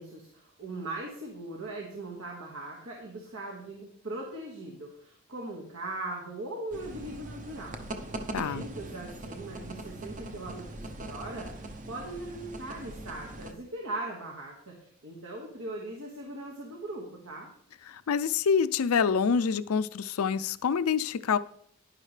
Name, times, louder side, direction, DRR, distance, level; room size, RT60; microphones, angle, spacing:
voice 1, 0.0-7.7 8.0-17.5, right 2 dB, 75° right, -3 dB, 1.8 m, -40 dB
sound 1, 6.7-13.5, right 2 dB, 35° right, 0.8 m, -41 dB
voice 2, 8.3-8.6 17.9-21.4, left 6 dB, 75° left, 15 dB, 0.4 m, -26 dB
10.5 x 10.5 x 3.3 m, 0.64 s
head